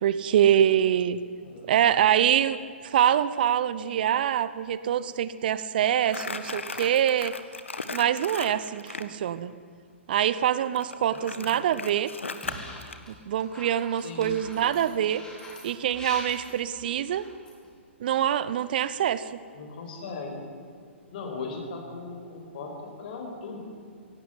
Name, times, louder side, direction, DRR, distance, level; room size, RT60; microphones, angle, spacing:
voice 1, 0.0-1.2 1.7-2.6 2.8-7.4 7.9-9.5 10.1-12.1 13.1-15.2 15.6-17.3 18.0-19.3, right 10 dB, 45° right, 15 dB, 0.8 m, -24 dB
Crumpling crinkling, 6.0-9.1 10.7-13.0, left 4 dB, 70° left, 1.7 m, -37 dB
voice 2, 11.1-11.5 13.9-14.3 19.5-20.4 21.1-22.7 23.0-23.6, left 4 dB, 45° left, 2 dB, 5.5 m, -38 dB
sound 1, 12.4-13.1 13.4-17.7, left 1 dB, 10° left, 4.5 m, -43 dB
17.0 x 17.0 x 9.7 m, 2.3 s
figure-of-eight pair, 115°, 7 cm